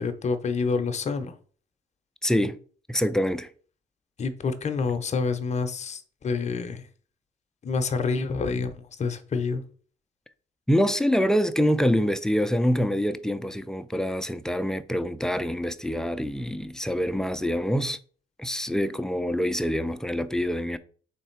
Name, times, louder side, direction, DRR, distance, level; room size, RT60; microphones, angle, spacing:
voice 1, 0.0-1.3 4.2-6.9 7.6-9.6, left 4 dB, 35° left, 0.6 m, -28 dB
voice 2, 2.2-2.6 2.9-3.5 10.7-18.0 18.4-20.8, equal, 5° left, 0.3 m, -25 dB
3.5 x 3.2 x 4.5 m
cardioid pair, 90°, 20 cm